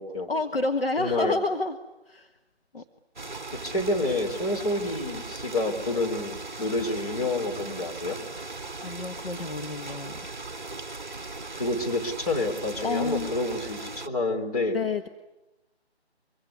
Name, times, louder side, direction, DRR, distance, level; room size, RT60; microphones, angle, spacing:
voice 1, 0.3-1.8 2.1-2.4 2.7-2.8 7.6-7.9 8.8-10.2 12.8-13.3 14.7-15.1, left 3 dB, 60° left, 6 dB, 1.5 m, -29 dB
voice 2, 1.0-1.4 3.5-8.2 11.6-14.8, left 2 dB, 35° left, 1 dB, 3.5 m, -28 dB
sound 1, 3.2-14.1, right 3 dB, 45° right, 0.9 m, -38 dB
24.5 x 23.5 x 9.6 m, 0.99 s
figure-of-eight pair, 160°, 33 cm